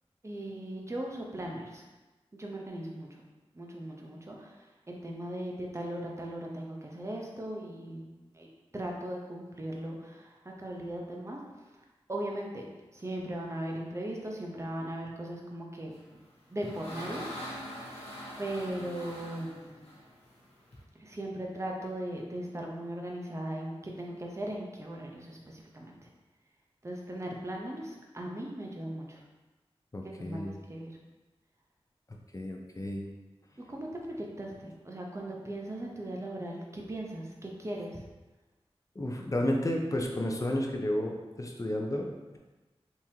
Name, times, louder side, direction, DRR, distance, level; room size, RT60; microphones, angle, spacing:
voice 1, 0.2-1.8 2.3-3.1 3.5-4.5 4.9-8.1 8.3-11.4 12.1-12.6 12.9-16.2 16.5-17.6 18.4-19.7 21.0-25.9 26.8-29.2 30.2-30.9 33.7-38.0, right 1 dB, 25° right, -1 dB, 0.7 m, -38 dB
sound 1, 16.1-20.8, equal, 80° left, 0.9 m, -43 dB
voice 2, 29.9-30.6 32.3-33.0 39.0-42.4, left 1 dB, 30° left, 1 dB, 0.6 m, -32 dB
3.6 x 3.0 x 2.8 m, 1.2 s
cardioid pair, 45°, 11 cm